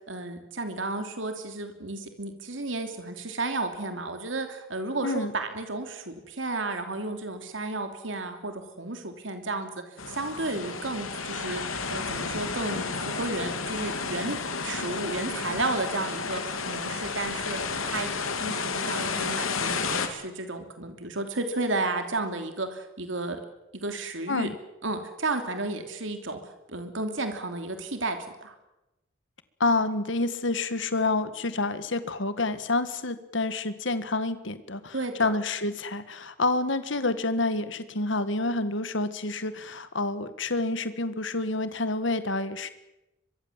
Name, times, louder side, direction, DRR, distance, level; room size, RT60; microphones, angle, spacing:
voice 1, 0.1-9.7 10.1-11.6 11.9-23.4 23.7-24.5 24.8-26.4 26.7-28.5 34.9-35.3, right 2 dB, 65° right, 6 dB, 3.1 m, -33 dB
sound 1, 10.0-20.1, left 4 dB, 90° left, 3.2 m, -32 dB
voice 2, 29.6-42.7, left 2 dB, 65° left, 12 dB, 1.8 m, -28 dB
24.5 x 22.5 x 7.6 m, 0.94 s
head